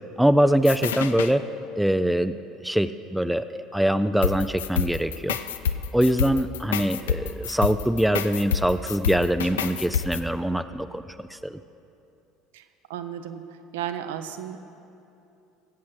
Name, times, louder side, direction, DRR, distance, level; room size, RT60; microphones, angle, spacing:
voice 1, 0.2-1.4 1.8-2.3 2.6-5.4 5.9-11.0 11.3-11.6, right 1 dB, 5° right, 11 dB, 0.4 m, -23 dB
sound 1, 0.6-1.3 4.2-10.2, left 7 dB, 70° left, 0.4 m, -28 dB
voice 2, 12.9-13.4 13.7-14.6, right 10 dB, 65° right, 8 dB, 0.6 m, -33 dB
20.5 x 8.5 x 3.9 m, 2.8 s
figure-of-eight pair, 65°, 0 cm